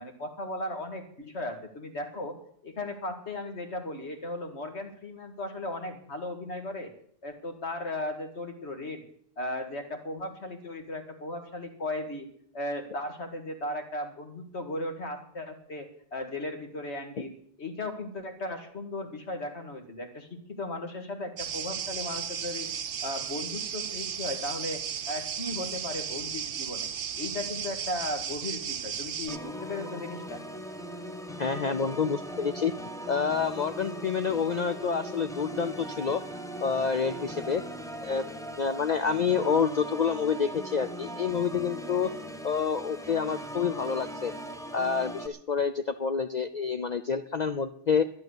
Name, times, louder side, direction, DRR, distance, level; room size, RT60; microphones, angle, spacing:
voice 1, 0.0-2.4 2.6-6.9 7.2-9.0 9.4-12.3 12.5-22.7 23.0-26.9 27.2-30.4, left 1 dB, 65° left, 6 dB, 2.2 m, -36 dB
sound 1, 21.4-29.4, right 7 dB, 50° right, 0.8 m, -35 dB
Organ, 29.3-45.3, equal, 5° left, 0.9 m, -39 dB
voice 2, 31.4-32.7 33.1-36.2 36.6-37.6 38.0-42.1 42.4-44.3 44.7-48.0, left 6 dB, 45° left, 9 dB, 0.6 m, -28 dB
12.0 x 11.0 x 7.9 m, 0.64 s
omnidirectional pair, 1.2 m